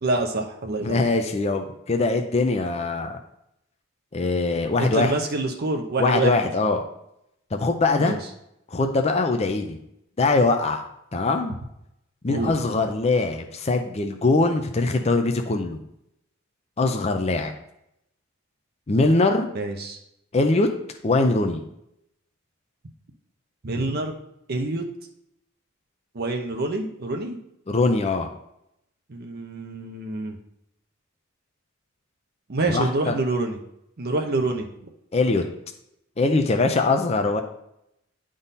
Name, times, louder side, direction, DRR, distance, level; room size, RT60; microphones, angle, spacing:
voice 1, 0.0-1.1 4.8-6.3 8.0-8.2 12.3-12.5 19.5-20.0 23.6-24.1 24.5-24.9 26.1-27.4 29.1-30.4 32.5-33.6 34.0-34.7, right 2 dB, 50° right, 2 dB, 0.7 m, -26 dB
voice 2, 0.8-3.1 4.1-5.1 6.0-6.8 7.5-8.2 8.7-9.8 10.2-10.9 11.1-11.6 12.2-15.8 16.8-17.5 18.9-19.5 20.3-20.7 21.0-21.6 27.7-28.3 32.7-33.1 35.1-35.4 36.2-37.4, left 3 dB, 30° left, 4 dB, 0.5 m, -22 dB
10.0 x 3.7 x 4.1 m, 0.81 s
head